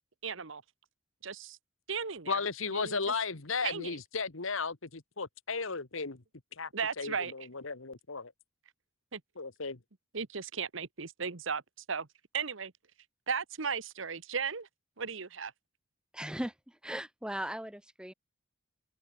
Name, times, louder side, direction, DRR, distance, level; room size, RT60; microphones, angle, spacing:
voice 1, 0.2-0.6 1.2-1.6 1.9-2.4 2.7-3.0 3.6-4.0 6.7-7.3 9.1-9.2 10.1-11.6 11.9-12.1 12.3-12.7 13.3-14.7 15.0-15.5, right 6 dB, 70° right, 1.2 m, -35 dB
voice 2, 2.3-6.2 6.6-6.7 7.0-8.3 9.4-9.8, left 4 dB, 75° left, 1.6 m, -35 dB
voice 3, 16.1-18.1, equal, 5° right, 1.7 m, -38 dB
open air
head